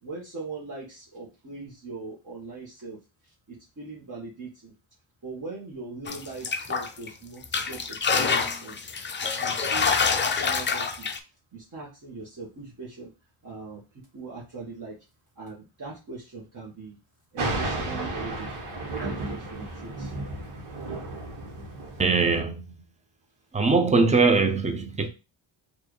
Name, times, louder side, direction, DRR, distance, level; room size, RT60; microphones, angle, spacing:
voice 1, 0.0-3.0 3.5-4.7 5.2-9.1 9.4-11.2 11.5-13.1 13.4-13.8 14.1-14.9 15.3-17.0 17.3-18.6 19.0-20.1, right 3 dB, 40° right, 1.6 m, -40 dB
sound 1, 6.1-7.1 7.4-11.2, left 5 dB, 25° left, 0.5 m, -26 dB
Thunder, 17.4-22.4, right 2 dB, 85° right, 1.4 m, -33 dB
voice 2, 22.0-22.7 23.5-25.1, right 4 dB, 15° right, 0.7 m, -21 dB
4.5 x 2.7 x 3.1 m
cardioid pair, 100°, 49 cm